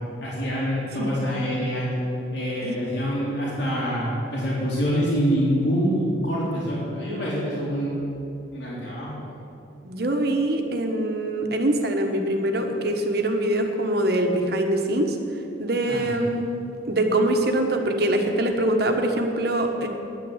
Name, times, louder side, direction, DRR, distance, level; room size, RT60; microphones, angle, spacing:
voice 1, 0.2-1.9 2.3-8.0 8.5-9.2 15.9-16.3, equal, 65° left, -6 dB, 3.5 m, -26 dB
voice 2, 9.8-15.2 15.6-16.5 16.9-19.9, right 1 dB, 55° right, 3 dB, 1.3 m, -23 dB
10.5 x 9.1 x 8.1 m, 2.7 s
head